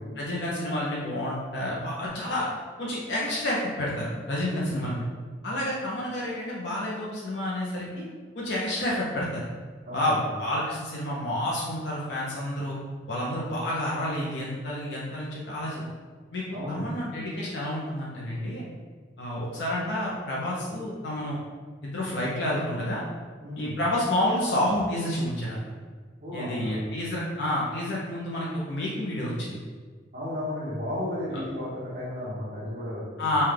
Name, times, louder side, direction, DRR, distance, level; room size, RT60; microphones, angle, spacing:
voice 1, 0.2-2.5 2.8-5.0 5.4-8.0 8.4-9.4 9.9-12.8 13.1-15.8 16.3-18.7 19.2-21.4 21.8-23.0 23.6-25.6 26.3-29.6 31.3-31.4 33.2-33.4, left 1 dB, 70° left, -5 dB, 0.7 m, -29 dB
voice 2, 4.5-5.0 9.8-10.3 16.5-16.9 23.4-23.8 26.2-26.9 30.1-33.4, left 1 dB, 40° right, -11 dB, 1.1 m, -34 dB
5.5 x 2.3 x 3.3 m, 1.5 s
head